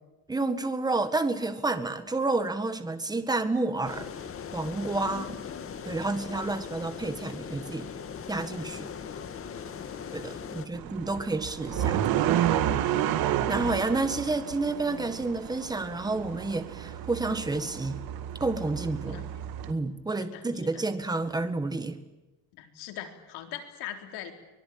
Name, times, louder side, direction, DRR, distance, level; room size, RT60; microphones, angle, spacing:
voice 1, 0.3-4.1 4.5-5.4 5.8-7.9 8.3-8.9 10.1-12.0 12.7-12.9 13.5-18.0 18.4-19.2 19.7-22.0, right 3 dB, 10° right, 10 dB, 1.7 m, -30 dB
sound 1, 3.8-10.7, left 7 dB, 35° left, 2.2 m, -40 dB
voice 2, 4.9-5.7 9.0-9.1 10.3-10.5 11.6-12.0 12.9-13.1 19.1-19.5 20.2-20.4 20.7-20.8 22.5-24.3, left 10 dB, 85° left, 5 dB, 4.1 m, -42 dB
sound 2, 10.7-19.7, right 11 dB, 65° right, 2.1 m, -30 dB
24.5 x 21.5 x 8.8 m, 1.0 s
cardioid pair, 150°, 38 cm